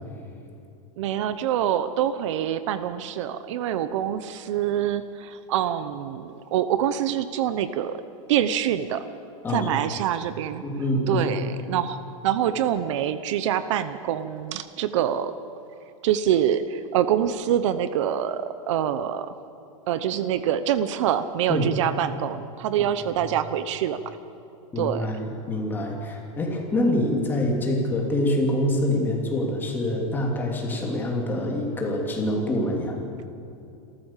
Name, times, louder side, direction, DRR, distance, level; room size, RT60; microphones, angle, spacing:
voice 1, 1.0-8.0 8.3-9.1 9.5-10.6 11.1-15.3 16.0-19.3 19.9-24.0 24.8-25.1, right 10 dB, 60° right, 12 dB, 0.9 m, -25 dB
voice 2, 10.6-11.3 21.5-21.7 24.7-33.0, left 1 dB, 10° left, 0 dB, 2.9 m, -25 dB
27.0 x 14.0 x 7.4 m, 2.7 s
supercardioid pair, 165°, 18 cm